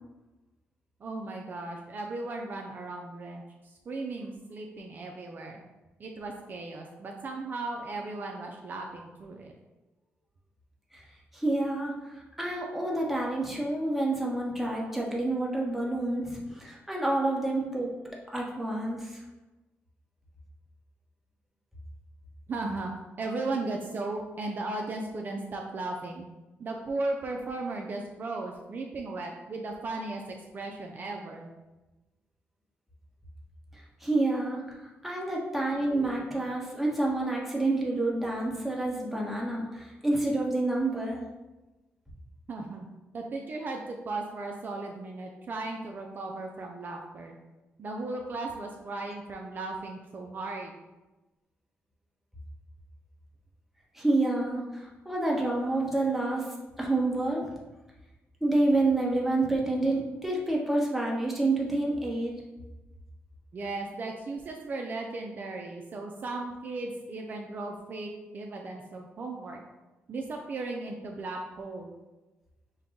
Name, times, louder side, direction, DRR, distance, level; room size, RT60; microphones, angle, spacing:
voice 1, 1.0-5.6 6.0-9.5 22.5-22.9 23.2-26.3 26.6-31.5 42.5-42.9 43.1-47.4 47.8-50.8 63.5-69.6 70.1-71.9, right 2 dB, 45° right, 1 dB, 0.5 m, -36 dB
voice 2, 11.3-17.9 18.3-19.2 33.7-41.2 53.9-56.5 56.8-57.5 58.4-62.3, right 2 dB, 5° right, -3 dB, 1.0 m, -28 dB
5.4 x 2.2 x 3.7 m, 1.1 s
cardioid pair, 100°, 4 cm